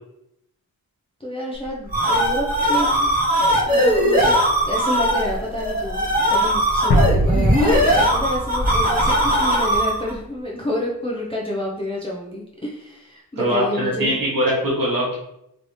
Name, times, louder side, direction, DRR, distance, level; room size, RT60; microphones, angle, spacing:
voice 1, 1.2-3.1 3.7-4.4 4.6-14.2, left 1 dB, 15° left, -4 dB, 0.5 m, -28 dB
sound 1, 1.6-10.1, equal, 25° right, 0.7 m, -19 dB
sound 2, 6.9-9.7, equal, 90° left, 0.7 m, -22 dB
voice 2, 13.4-15.2, equal, 60° right, -5 dB, 1.1 m, -22 dB
3.1 x 2.7 x 3.0 m, 0.80 s
wide cardioid pair, 130°, 37 cm